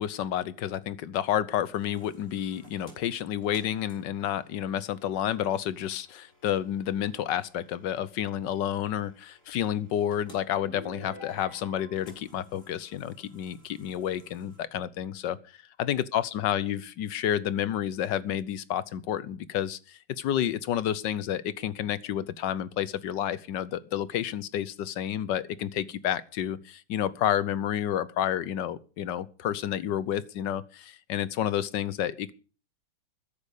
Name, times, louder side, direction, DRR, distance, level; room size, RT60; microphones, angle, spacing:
voice 1, 0.0-15.4 15.8-32.3, left 10 dB, 70° left, 1.4 m, -30 dB
sound 1, 1.7-14.6, equal, 40° left, 4.6 m, -59 dB
sound 2, 10.6-12.1, equal, 40° right, 5.5 m, -45 dB
13.5 x 10.5 x 6.5 m
omnidirectional pair, 2.0 m